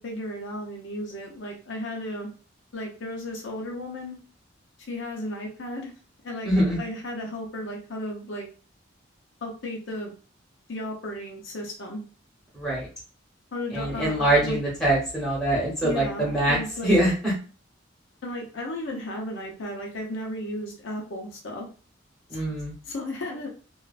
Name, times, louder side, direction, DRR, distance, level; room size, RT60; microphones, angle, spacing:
voice 1, 0.0-2.3 2.7-4.2 4.9-5.9 6.2-6.5 6.8-8.5 9.4-10.1 10.7-12.0 13.5-14.6 15.8-17.0 18.2-21.7 22.3-22.5 22.9-23.5, left 1 dB, 70° left, 0 dB, 0.6 m, -34 dB
voice 2, 6.4-6.8 12.5-12.9 13.7-17.3 22.3-22.7, right 1 dB, ahead, -6 dB, 0.9 m, -24 dB
2.4 x 2.2 x 2.3 m, 0.37 s
head